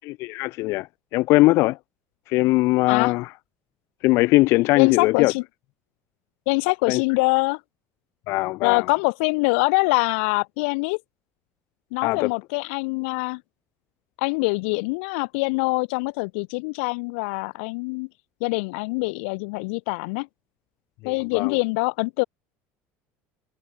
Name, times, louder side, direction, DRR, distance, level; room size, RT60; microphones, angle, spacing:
voice 1, 0.0-0.9 1.1-1.8 2.3-3.3 4.0-5.3 6.9-7.0 8.3-8.9 12.0-12.3 21.0-21.6, left 20 dB, 50° left, 0.4 m, -20 dB
voice 2, 4.7-5.4 6.5-7.6 8.6-11.0 11.9-13.4 14.2-18.1 18.4-20.3 21.0-22.2, left 30 dB, 85° left, 5.1 m, -24 dB
cardioid pair, 175°, 6 cm